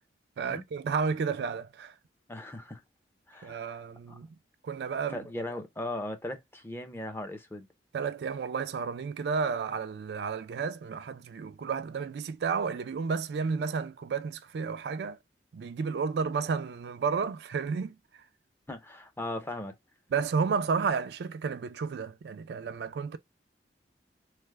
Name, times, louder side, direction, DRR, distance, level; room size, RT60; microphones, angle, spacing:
voice 1, 0.4-1.9 3.4-4.3 4.6-5.2 7.9-15.2 15.5-17.9 20.1-23.2, right 5 dB, 65° right, 0.3 m, -32 dB
voice 2, 2.3-2.8 3.3-3.8 4.1-4.2 5.1-7.7 18.7-19.8, left 1 dB, 15° left, 0.5 m, -38 dB
3.2 x 2.0 x 3.3 m
head